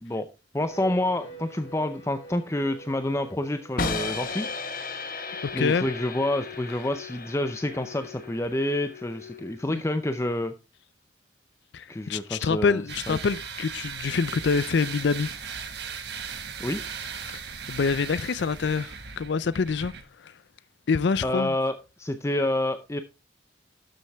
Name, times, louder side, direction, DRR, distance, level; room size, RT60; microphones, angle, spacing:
voice 1, 0.5-4.5 5.5-10.5 11.9-13.2 16.6-16.8 21.2-23.0, left 1 dB, 15° left, 0.5 m, -28 dB
sound 1, 0.7-7.4, right 3 dB, 90° left, 4.1 m, -48 dB
sound 2, 3.8-9.8, left 4 dB, 45° left, 1.1 m, -35 dB
voice 2, 5.4-5.8 9.7-9.8 11.7-15.3 17.3-17.4 17.7-20.4 20.9-21.5, left 5 dB, 65° left, 0.4 m, -26 dB
sound 3, 12.9-20.0, right 6 dB, 60° right, 1.5 m, -37 dB
12.0 x 7.5 x 3.5 m
head